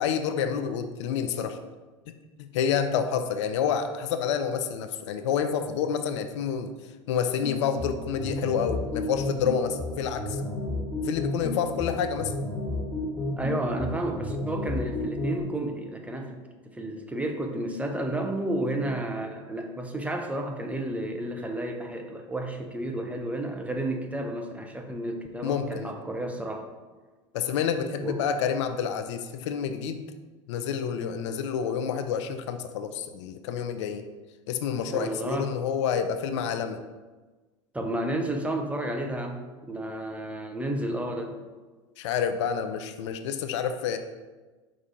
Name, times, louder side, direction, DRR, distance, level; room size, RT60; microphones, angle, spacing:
voice 1, 0.0-1.6 2.4-6.7 7.1-10.4 11.0-12.3 25.4-25.9 27.3-30.0 30.5-34.0 34.5-36.8 42.0-44.0, left 7 dB, 65° left, 8 dB, 0.4 m, -28 dB
sound 1, 7.4-15.4, left 2 dB, 10° left, 1.1 m, -32 dB
voice 2, 13.4-16.4 16.7-26.7 28.0-28.2 34.9-35.5 37.7-41.4, right 1 dB, 10° right, 3 dB, 0.5 m, -31 dB
4.6 x 2.4 x 4.2 m, 1.3 s
hypercardioid pair, 85°, 16 cm